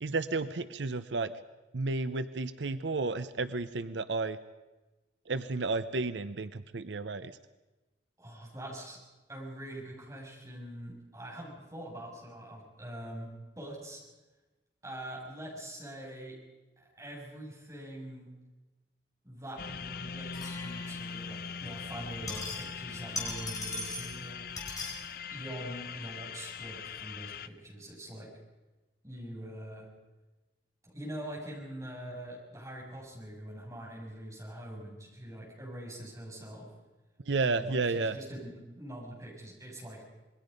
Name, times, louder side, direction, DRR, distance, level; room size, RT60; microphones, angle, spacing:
voice 1, 0.0-1.3 1.7-4.4 5.3-7.3 37.2-38.2, right 3 dB, 85° right, 12 dB, 0.7 m, -32 dB
voice 2, 8.2-9.0 9.3-14.0 14.8-16.4 16.8-18.3 19.2-24.4 25.3-28.3 29.0-29.9 30.8-36.7 37.4-40.0, right 1 dB, 20° right, -3 dB, 6.7 m, -44 dB
sound 1, 19.6-27.5, left 6 dB, 55° left, 0.7 m, -41 dB
sound 2, 20.3-21.2 22.0-22.8 23.1-24.2 24.6-25.0, left 2 dB, 20° left, 4.0 m, -39 dB
26.5 x 21.0 x 5.3 m, 1.1 s
head